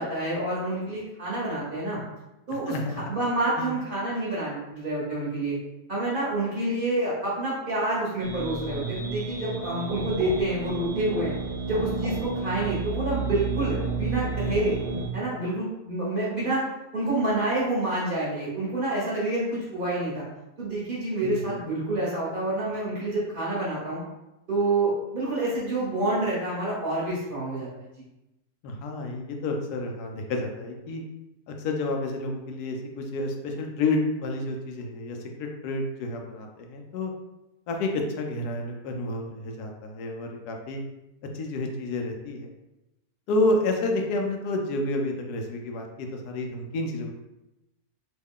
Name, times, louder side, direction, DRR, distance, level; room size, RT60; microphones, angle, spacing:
voice 1, 0.0-2.0 2.5-2.7 3.1-5.6 5.9-11.3 11.7-14.8 15.1-16.6 16.9-20.2 20.6-24.0 24.5-27.7, right 2 dB, 40° right, -7 dB, 1.1 m, -28 dB
voice 2, 2.7-3.0 3.6-3.7 21.2-21.6 28.6-31.0 31.5-37.1 37.7-40.8 41.3-42.5 43.3-47.1, left 2 dB, 85° left, 3 dB, 1.1 m, -30 dB
sound 1, 8.2-15.1, right 4 dB, 65° right, 0.6 m, -31 dB
3.1 x 2.2 x 3.5 m, 0.94 s
omnidirectional pair, 1.6 m